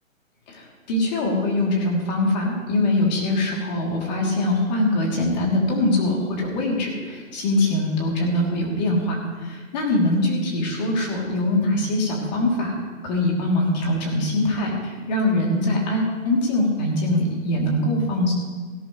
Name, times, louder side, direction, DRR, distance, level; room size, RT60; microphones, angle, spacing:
voice 1, 0.5-12.8 13.0-18.3, left 1 dB, 30° left, -1 dB, 3.0 m, -23 dB
17.5 x 10.5 x 3.2 m, 1.4 s
hypercardioid pair, 155°, 41 cm